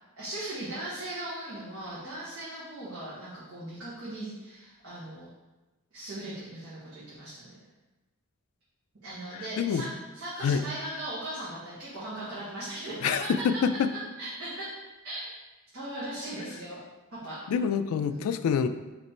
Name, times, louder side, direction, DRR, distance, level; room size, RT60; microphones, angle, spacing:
voice 1, 0.2-5.3 5.9-7.5 9.0-13.8 14.2-14.7 15.0-15.3 15.7-16.8 17.1-17.4 18.1-18.3, right 1 dB, 70° right, -11 dB, 1.4 m, -38 dB
voice 2, 13.0-13.9 17.5-18.7, left 7 dB, 85° left, 14 dB, 0.3 m, -26 dB
4.2 x 3.0 x 4.3 m, 1.1 s
head